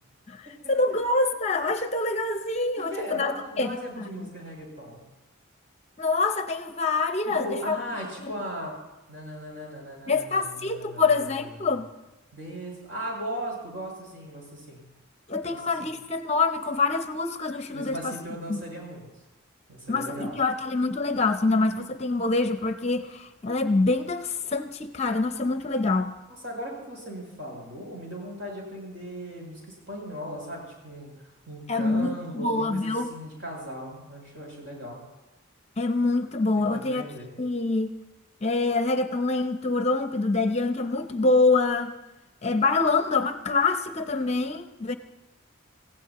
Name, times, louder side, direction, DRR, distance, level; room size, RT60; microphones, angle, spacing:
voice 1, 0.3-4.1 6.0-7.8 8.2-8.3 10.1-11.9 15.3-18.1 18.5-18.6 19.9-26.2 31.7-33.1 35.8-37.1 37.4-37.9 38.4-41.9 42.4-44.9, left 3 dB, 30° left, 8 dB, 0.7 m, -25 dB
voice 2, 2.9-5.0 7.2-8.8 9.1-11.8 12.3-14.8 15.4-15.9 17.7-19.1 19.7-20.3 26.4-31.1 31.5-35.0 36.6-37.3, equal, 60° right, -2 dB, 7.5 m, -38 dB
28.5 x 16.0 x 3.0 m, 1.0 s
head